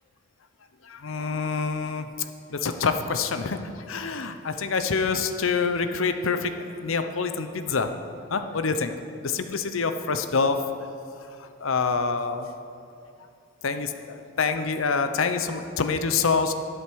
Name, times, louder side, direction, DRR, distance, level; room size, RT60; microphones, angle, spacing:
voice 1, 0.8-2.1 2.5-7.9 8.3-8.9 9.2-10.6 11.4-12.5 13.6-16.5, left 5 dB, 75° left, 8 dB, 0.7 m, -26 dB
11.5 x 7.8 x 6.2 m, 2.6 s
head